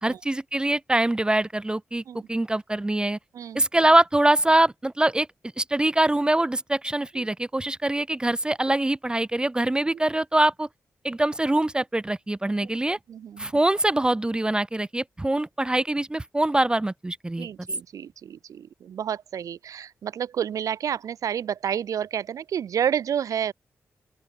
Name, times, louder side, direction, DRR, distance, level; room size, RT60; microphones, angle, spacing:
voice 1, 0.0-2.0 2.3-3.2 3.5-5.3 5.6-10.7 11.0-13.0 13.4-17.5, right 1 dB, 15° right, 0.4 m, -23 dB
voice 2, 13.1-13.5 17.4-23.5, right 8 dB, 85° right, 1.0 m, -30 dB
open air
cardioid pair, 60°, 6 cm